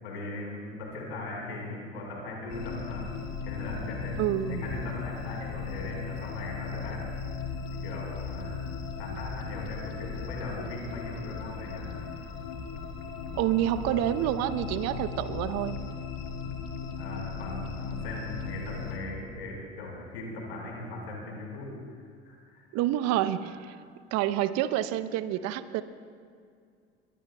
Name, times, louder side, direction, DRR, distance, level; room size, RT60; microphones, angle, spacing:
voice 1, 0.0-3.1 3.4-4.1 4.5-7.0 7.7-8.5 9.0-11.9 16.9-22.6, left 2 dB, 75° left, -1 dB, 4.7 m, -39 dB
sound 1, 2.5-19.0, left 5 dB, 55° left, 1.6 m, -37 dB
voice 2, 4.2-4.6 13.4-15.8 22.7-23.8 24.1-25.8, right 12 dB, 50° right, 13 dB, 0.8 m, -28 dB
23.0 x 20.0 x 2.3 m, 2.2 s
figure-of-eight pair, 65°, 33 cm